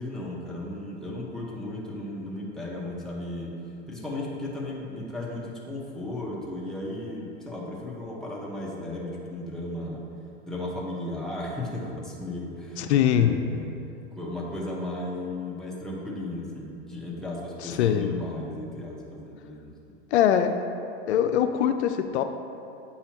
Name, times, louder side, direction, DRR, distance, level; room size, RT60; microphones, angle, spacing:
voice 1, 0.0-3.5 3.9-10.0 10.4-13.7 14.2-19.7, left 1 dB, ahead, -5 dB, 1.2 m, -35 dB
voice 2, 12.8-13.4 17.6-18.1 20.1-20.6 21.1-22.2, left 10 dB, 75° left, 7 dB, 0.5 m, -22 dB
8.4 x 5.6 x 2.9 m, 2.6 s
hypercardioid pair, 115°, 33 cm